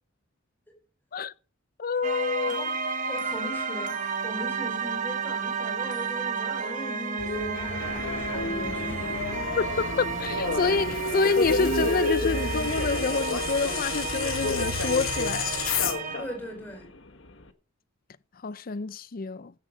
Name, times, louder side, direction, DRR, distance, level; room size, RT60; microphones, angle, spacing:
voice 1, 1.8-2.7 9.6-15.6 18.4-19.5, left 4 dB, 45° left, 0.5 m, -28 dB
sound 1, 2.0-16.5, right 5 dB, 40° right, 1.1 m, -32 dB
voice 2, 2.5-2.8 3.1-9.2 16.2-16.9, equal, 10° left, 4.9 m, -39 dB
sound 2, 7.2-15.9, left 3 dB, 85° left, 2.4 m, -31 dB
Subway metro underground, 7.8-17.5, left 3 dB, 65° left, 1.4 m, -34 dB
16.0 x 7.9 x 5.2 m
head